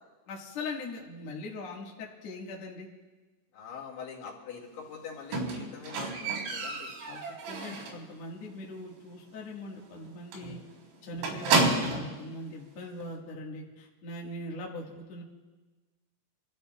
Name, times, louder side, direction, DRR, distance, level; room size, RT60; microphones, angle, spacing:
voice 1, 0.3-2.9 7.1-7.2 7.5-10.6 11.0-15.2, left 2 dB, 75° left, -2 dB, 1.5 m, -41 dB
voice 2, 3.5-6.9, left 6 dB, 55° left, -1 dB, 3.1 m, -44 dB
Squeak, 5.3-8.1 8.4-8.8 9.1-9.2 9.6-9.7 9.9-10.1 10.3-12.2 13.0-13.1, right 3 dB, 90° right, 4.8 m, -30 dB
29.0 x 13.5 x 2.3 m, 1.3 s
omnidirectional pair, 5.6 m